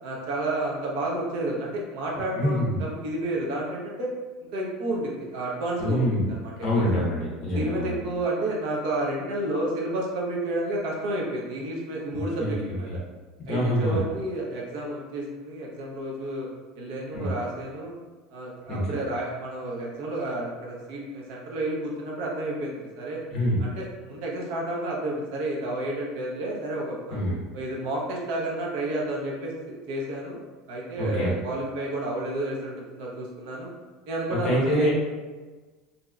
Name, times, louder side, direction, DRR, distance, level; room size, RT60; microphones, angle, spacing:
voice 1, 0.0-4.1 4.5-6.9 7.5-13.0 13.5-16.5 16.8-17.9 18.3-23.2 23.6-27.2 27.5-30.4 30.7-33.7 34.1-34.9, right 1 dB, 55° right, -3 dB, 0.7 m, -31 dB
voice 2, 2.3-2.8 5.8-6.3 6.6-8.0 12.4-12.5 13.5-14.0 17.1-17.3 18.7-18.8 23.3-23.6 27.1-27.4 31.0-31.3 34.4-34.9, equal, 30° left, -5 dB, 1.1 m, -25 dB
4.0 x 2.7 x 2.4 m, 1.3 s
cardioid pair, 180°, 0 cm